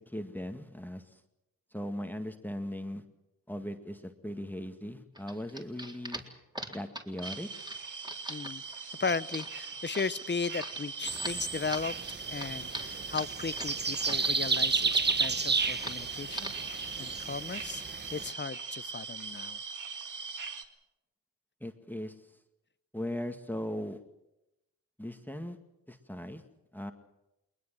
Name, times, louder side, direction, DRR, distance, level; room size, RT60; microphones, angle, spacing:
voice 1, 0.1-1.0 1.7-3.0 3.5-6.3 6.7-7.5 21.6-22.1 22.9-24.0 25.0-25.6 25.9-26.4 26.7-26.9, equal, 5° left, 7 dB, 2.1 m, -38 dB
sound 1, 5.1-14.3 14.6-15.3 15.7-16.0 16.3-16.7, right 1 dB, 10° right, 3.8 m, -42 dB
sound 2, 7.2-20.6, right 5 dB, 60° right, 2.0 m, -41 dB
voice 2, 8.3-8.6 9.0-11.9 12.3-14.9 15.2-17.8 18.1-19.6, left 4 dB, 30° left, 17 dB, 0.9 m, -36 dB
sound 3, 11.0-18.3, right 4 dB, 30° right, 1.1 m, -32 dB
21.0 x 20.5 x 7.7 m, 0.92 s
supercardioid pair, 40°, 34 cm